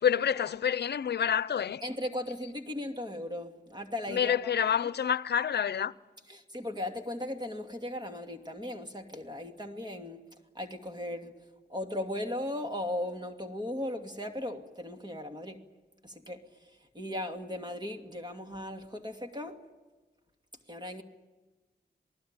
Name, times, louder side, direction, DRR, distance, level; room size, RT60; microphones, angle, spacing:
voice 1, 0.0-1.8 4.1-5.9, left 8 dB, 75° left, 0.7 m, -28 dB
voice 2, 1.8-4.5 6.3-10.2 10.5-11.3 11.7-15.6 16.0-16.4 16.9-19.6 20.7-21.0, left 1 dB, 25° right, 2.6 m, -37 dB
27.5 x 19.5 x 8.9 m
cardioid pair, 75°, 17 cm